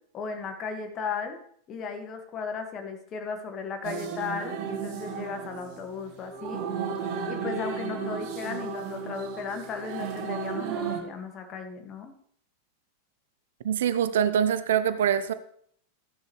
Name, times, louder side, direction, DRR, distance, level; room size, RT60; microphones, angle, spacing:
voice 1, 0.1-1.4 1.7-6.6 7.3-12.1, left 5 dB, 30° left, 5 dB, 1.8 m, -36 dB
sound 1, 3.8-11.0, right 6 dB, 40° right, 1.8 m, -34 dB
voice 2, 13.6-15.3, right 9 dB, 60° right, 13 dB, 0.6 m, -24 dB
14.5 x 10.5 x 3.2 m, 0.64 s
figure-of-eight pair, 90°, 0 cm